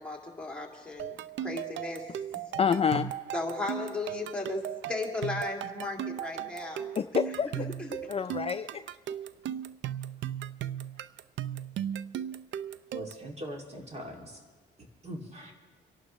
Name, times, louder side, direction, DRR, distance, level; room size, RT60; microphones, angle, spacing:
voice 1, 0.0-2.4 3.3-6.9 7.5-8.1, left 3 dB, 5° left, -1 dB, 2.4 m, -36 dB
sound 1, 1.0-13.3, right 10 dB, 70° right, 0.5 m, -37 dB
voice 2, 2.5-3.1 7.0-7.7 8.1-8.8, left 7 dB, 30° left, 9 dB, 0.4 m, -28 dB
voice 3, 12.9-14.4 14.8-15.5, equal, 35° right, 1 dB, 2.6 m, -42 dB
26.5 x 11.5 x 3.2 m, 1.5 s
cardioid pair, 90°, 20 cm